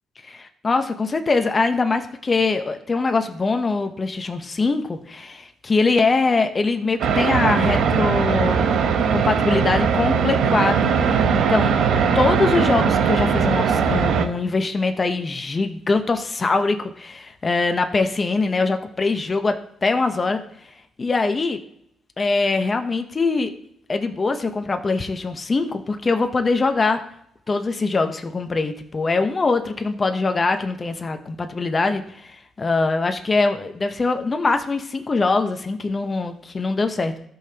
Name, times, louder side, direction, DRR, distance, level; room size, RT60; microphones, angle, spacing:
voice 1, 0.3-8.7 9.1-11.7 12.1-19.5 19.8-20.4 21.0-21.6 22.2-23.5 23.9-27.0 27.5-37.1, left 3 dB, 30° left, 7 dB, 0.8 m, -22 dB
sound 1, 7.0-14.3, right 6 dB, 80° right, 0.9 m, -20 dB
13.5 x 5.6 x 2.9 m, 0.74 s
cardioid pair, 90°, 0 cm